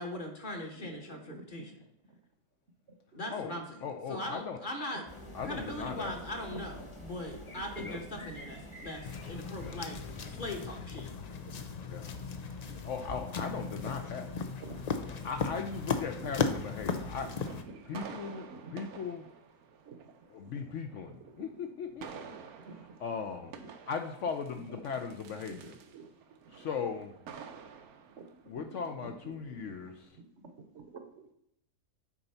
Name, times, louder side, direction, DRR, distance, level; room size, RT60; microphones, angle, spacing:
voice 1, 0.0-1.9 3.1-5.0 5.4-11.1, left 1 dB, 35° left, 2 dB, 1.2 m, -40 dB
voice 2, 0.8-1.5 3.1-3.2 6.5-6.6 7.8-7.9 8.1-8.3 12.7-12.8 14.6-14.8 16.2-16.3 17.2-17.3 17.9-18.8 19.8-20.0 21.2-21.6 22.7-22.8 23.6-23.7 25.5-25.6 25.9-26.1 28.2-28.3 28.6-28.7 29.0-29.7 30.4-31.3, right 4 dB, 55° right, 6 dB, 1.1 m, -49 dB
voice 3, 3.8-4.6 5.3-6.2 7.8-8.0 9.6-9.8 11.9-12.1 12.8-14.3 15.1-17.3 17.8-19.3 20.3-22.4 23.0-23.5 23.9-25.8 26.5-27.1 28.5-30.2, left 6 dB, 65° left, 6 dB, 0.9 m, -38 dB
sound 1, 5.1-10.8, left 1 dB, 20° left, 1.1 m, -47 dB
sound 2, 9.0-17.6, left 5 dB, 80° left, 0.3 m, -37 dB
sound 3, 12.5-30.1, right 6 dB, 80° right, 1.3 m, -52 dB
8.8 x 4.0 x 5.6 m, 0.76 s
omnidirectional pair, 1.6 m